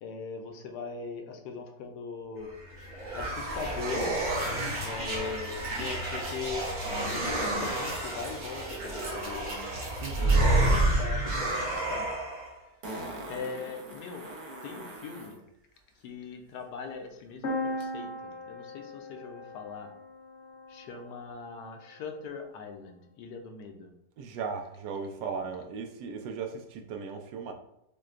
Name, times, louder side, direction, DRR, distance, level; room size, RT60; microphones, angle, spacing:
voice 1, 0.0-2.6 3.1-4.3 4.8-6.7 7.1-9.7 10.2-12.1 13.2-14.3 14.6-15.4 16.0-19.9 20.7-23.9, left 5 dB, 75° left, 4 dB, 1.1 m, -40 dB
sound 1, 2.5-12.5, right 2 dB, 60° right, 1.6 m, -29 dB
voice 2, 10.0-10.4 24.2-27.5, right 5 dB, 85° right, 5 dB, 1.2 m, -37 dB
Fart, 12.8-15.4 17.8-17.9, right 1 dB, 45° right, 0.6 m, -42 dB
sound 2, 17.4-21.2, left 1 dB, 55° left, 0.8 m, -38 dB
6.4 x 2.2 x 2.5 m, 0.81 s
omnidirectional pair, 1.8 m